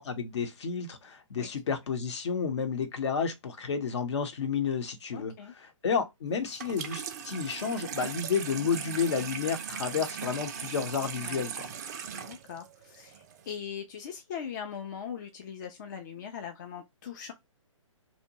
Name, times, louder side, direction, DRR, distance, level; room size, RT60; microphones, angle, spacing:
voice 1, 0.0-5.3 5.8-11.7, left 6 dB, 60° left, 0.8 m, -31 dB
voice 2, 5.1-5.5 11.2-11.4 12.1-17.3, left 8 dB, 35° left, 0.4 m, -40 dB
Water tap faucet / Sink (filling or washing), 6.5-13.5, right 7 dB, 35° right, 0.3 m, -39 dB
2.7 x 2.1 x 2.9 m
hypercardioid pair, 140°, 17 cm